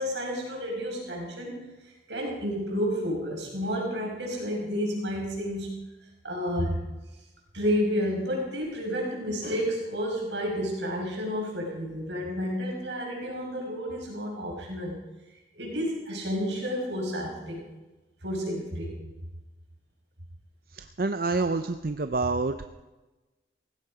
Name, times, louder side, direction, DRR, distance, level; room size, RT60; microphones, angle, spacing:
voice 1, 0.0-1.7 2.1-5.7 6.2-6.8 7.5-15.0 15.6-17.7 18.2-19.0, equal, 80° right, -1 dB, 5.6 m, -30 dB
voice 2, 20.7-22.5, right 3 dB, 55° right, 9 dB, 0.6 m, -27 dB
18.0 x 16.0 x 5.0 m, 1.1 s
head